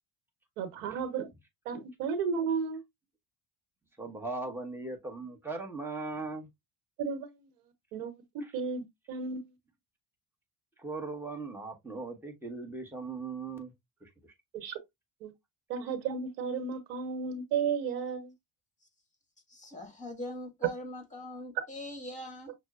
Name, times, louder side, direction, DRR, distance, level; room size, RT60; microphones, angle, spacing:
voice 1, 0.6-1.3 1.6-2.8 7.0-7.5 7.9-9.5 14.5-14.8 15.2-15.3 15.7-18.3, right 6 dB, 90° right, 1.0 m, -33 dB
voice 2, 4.0-6.5 10.8-13.7 14.0-14.1, right 3 dB, 5° right, 1.1 m, -38 dB
voice 3, 19.5-22.5, left 1 dB, 15° left, 1.6 m, -42 dB
6.1 x 2.1 x 2.3 m
supercardioid pair, 90°, 46 cm